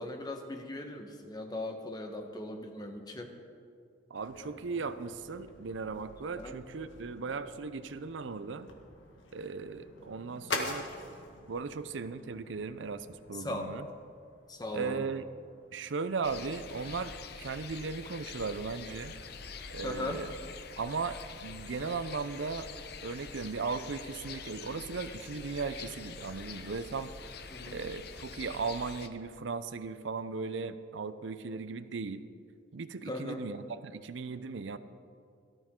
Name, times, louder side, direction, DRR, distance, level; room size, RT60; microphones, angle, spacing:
voice 1, 0.0-3.3 6.4-6.5 13.3-13.8 14.5-15.1 19.8-20.2 27.5-27.8 33.0-33.4, left 1 dB, 20° left, 4 dB, 1.0 m, -39 dB
voice 2, 4.1-8.7 9.3-10.9 11.5-13.9 14.7-15.2 15.7-17.1 17.4-19.1 19.7-20.3 20.8-22.7 23.0-27.1 27.7-32.2 32.7-34.8, right 4 dB, 70° right, 12 dB, 0.5 m, -37 dB
sound 1, 4.2-17.1, left 3 dB, 75° left, 1.7 m, -46 dB
sound 2, 16.2-29.1, left 5 dB, 55° left, 0.7 m, -45 dB
17.5 x 12.5 x 3.7 m, 2.3 s
head